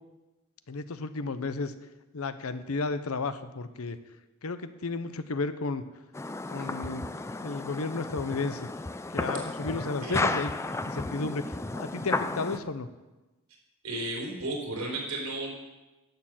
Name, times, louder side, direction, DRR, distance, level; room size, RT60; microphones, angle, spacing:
voice 1, 0.7-1.7 2.1-4.0 4.4-5.8 6.5-7.1 7.4-8.7 9.1-10.5 10.8-12.9, left 3 dB, 85° left, 12 dB, 0.8 m, -33 dB
sound 1, 6.1-12.6, left 2 dB, 15° left, 0.4 m, -33 dB
voice 2, 13.8-15.5, right 2 dB, 80° right, 0 dB, 3.8 m, -34 dB
11.5 x 6.8 x 7.5 m, 1.1 s
head